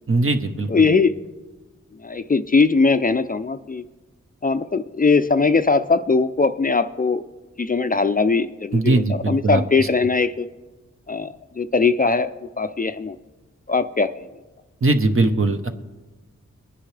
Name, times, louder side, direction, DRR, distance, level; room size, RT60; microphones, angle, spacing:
voice 1, 0.1-0.9 8.7-9.9 14.8-15.7, right 2 dB, 45° right, 7 dB, 1.0 m, -20 dB
voice 2, 0.7-1.1 2.0-3.9 4.4-7.2 7.6-10.5 11.1-12.3 12.6-13.2 13.7-14.1, left 4 dB, 30° left, 10 dB, 0.4 m, -20 dB
21.0 x 9.9 x 3.3 m, 1.2 s
wide cardioid pair, 70°, 29 cm